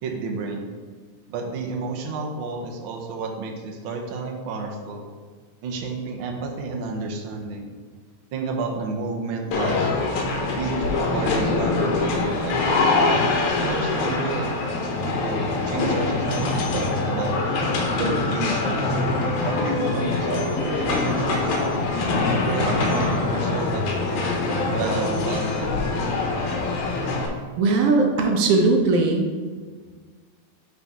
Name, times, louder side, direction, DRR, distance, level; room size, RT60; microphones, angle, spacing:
voice 1, 0.0-0.7 1.3-5.0 5.6-7.7 8.3-9.8 10.6-12.9 13.5-14.5 14.9-17.4 17.9-19.0 19.4-21.8 22.4-24.3 24.7-26.2, right 3 dB, 90° right, 1 dB, 1.1 m, -30 dB
sound 1, 9.5-27.3, left 3 dB, 80° left, 2.4 m, -24 dB
voice 2, 27.6-29.2, right 3 dB, 70° right, 2 dB, 1.5 m, -19 dB
11.0 x 4.1 x 3.6 m, 1.5 s
omnidirectional pair, 3.4 m